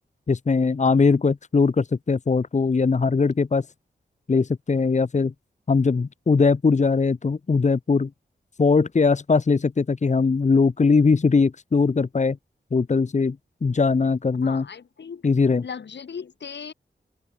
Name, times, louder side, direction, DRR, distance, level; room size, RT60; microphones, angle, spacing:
voice 1, 0.3-3.7 4.3-5.3 5.7-8.1 8.6-12.4 12.7-13.4 13.6-14.7 15.2-15.6, left 4 dB, 40° left, 1.4 m, -20 dB
voice 2, 14.4-15.2 15.6-16.7, left 6 dB, 85° left, 6.1 m, -37 dB
wide cardioid pair, 105°, 18 cm